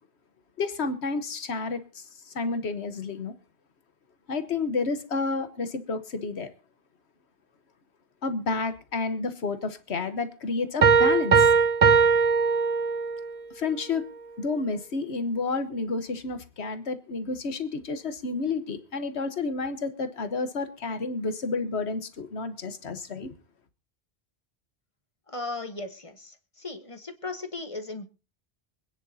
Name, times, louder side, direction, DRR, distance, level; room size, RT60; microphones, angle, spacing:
voice 1, 0.6-3.3 4.3-6.5 8.2-11.5 13.5-14.0 14.4-23.3, left 4 dB, 85° left, 1.5 m, -30 dB
Piano, 10.8-13.3, right 5 dB, 40° right, 0.7 m, -20 dB
voice 2, 25.3-28.1, left 3 dB, 30° left, 1.4 m, -37 dB
25.0 x 10.0 x 2.8 m
omnidirectional pair, 1.1 m